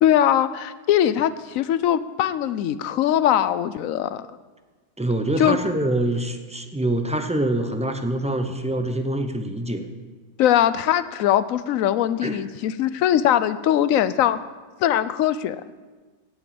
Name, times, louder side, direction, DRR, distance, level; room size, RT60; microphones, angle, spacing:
voice 1, 0.0-4.3 5.4-5.6 10.4-14.4 14.8-15.6, left 11 dB, 90° left, 14 dB, 1.0 m, -21 dB
voice 2, 5.0-9.9 12.2-12.4, right 1 dB, 5° right, 6 dB, 0.6 m, -25 dB
16.5 x 6.1 x 7.0 m, 1.3 s
omnidirectional pair, 1.4 m